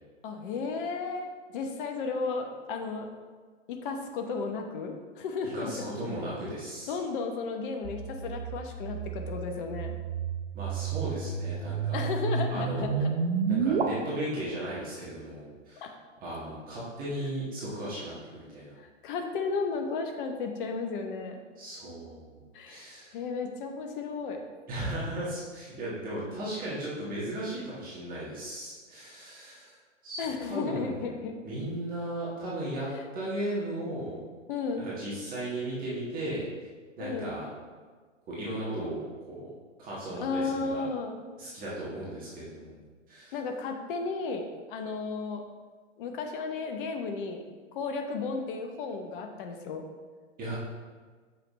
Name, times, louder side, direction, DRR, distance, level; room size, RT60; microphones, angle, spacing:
voice 1, 0.2-3.1 3.7-5.9 6.9-9.9 11.9-13.1 15.8-15.9 18.8-21.4 22.5-22.9 23.1-24.4 30.2-31.3 32.9-33.0 34.5-34.8 37.0-37.3 40.2-41.2 43.3-45.4 46.0-47.4 47.7-49.8, left 4 dB, 40° left, 4 dB, 0.9 m, -34 dB
voice 2, 5.5-6.9 10.5-12.0 12.5-13.1 13.5-15.8 16.2-18.7 21.6-23.1 24.7-29.8 30.0-31.0 31.4-34.2 34.8-36.5 37.0-37.5 38.3-39.5 39.8-40.9 41.4-42.8 43.1-43.3 50.4-50.6, right 1 dB, 20° right, -8 dB, 1.6 m, -36 dB
sound 1, 7.8-13.8, right 5 dB, 50° right, 0.9 m, -31 dB
7.5 x 5.8 x 3.1 m, 1.5 s
figure-of-eight pair, 120°, 38 cm